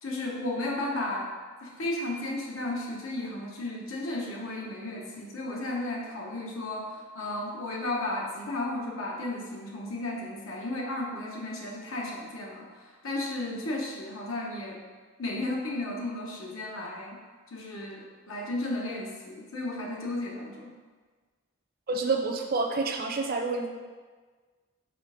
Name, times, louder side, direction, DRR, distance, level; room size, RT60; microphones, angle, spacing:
voice 1, 0.0-1.3 1.6-14.8 15.2-17.2 17.5-20.8, left 2 dB, 90° left, -2 dB, 1.2 m, -34 dB
voice 2, 21.9-23.7, right 3 dB, 45° right, 3 dB, 0.6 m, -28 dB
5.7 x 3.3 x 5.1 m, 1.4 s
head